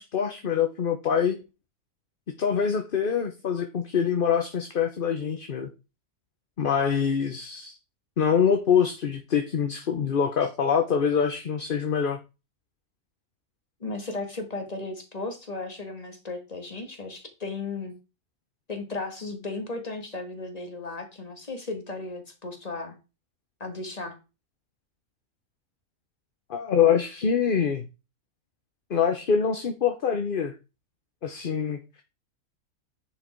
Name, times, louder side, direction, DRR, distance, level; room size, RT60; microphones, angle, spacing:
voice 1, 0.0-1.4 2.4-5.7 6.6-7.7 8.2-12.2 26.5-27.9 28.9-30.5 31.2-32.0, left 7 dB, 45° left, 6 dB, 0.9 m, -25 dB
voice 2, 13.8-17.9 18.7-23.0 23.6-24.2, left 3 dB, 30° left, 5 dB, 1.9 m, -35 dB
10.0 x 4.9 x 4.5 m, 0.29 s
omnidirectional pair, 1.5 m